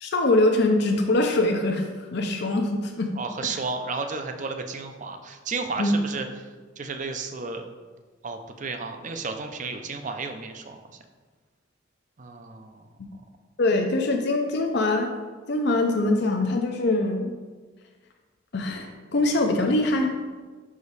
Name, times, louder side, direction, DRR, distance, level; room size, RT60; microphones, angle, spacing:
voice 1, 0.0-1.8 2.1-3.1 5.8-6.0 13.6-15.1 15.5-17.3 18.5-20.1, left 2 dB, 60° left, 3 dB, 0.6 m, -23 dB
voice 2, 3.2-6.3 6.8-7.6 8.2-10.8 12.2-12.8, right 4 dB, 40° right, 6 dB, 0.5 m, -33 dB
5.9 x 5.0 x 4.1 m, 1.4 s
head